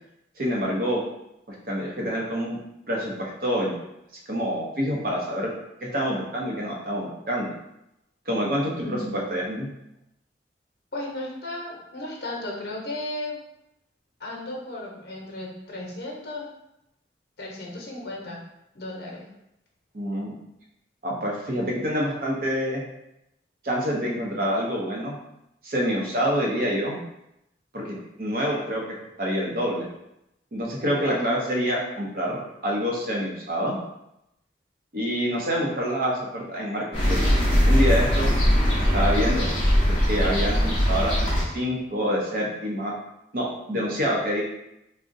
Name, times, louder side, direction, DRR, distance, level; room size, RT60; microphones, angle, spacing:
voice 1, 0.4-1.0 1.7-2.6 2.9-3.7 4.3-5.5 5.8-7.5 8.3-8.9 9.1-9.7 19.9-20.3 21.0-22.8 23.6-25.2 25.6-27.0 27.7-28.8 29.2-29.9 30.5-33.8 34.9-37.2 37.6-38.3 38.9-39.5 39.8-42.9 43.3-44.4, equal, 50° right, -2 dB, 0.7 m, -26 dB
voice 2, 8.8-9.2 10.9-13.4 14.2-16.5 17.4-18.4 18.7-19.2 31.1-31.5, left 1 dB, 65° left, -2 dB, 0.8 m, -35 dB
sound 1, 36.9-41.4, equal, 30° left, 0.7 m, -21 dB
3.6 x 2.1 x 2.6 m, 0.85 s
head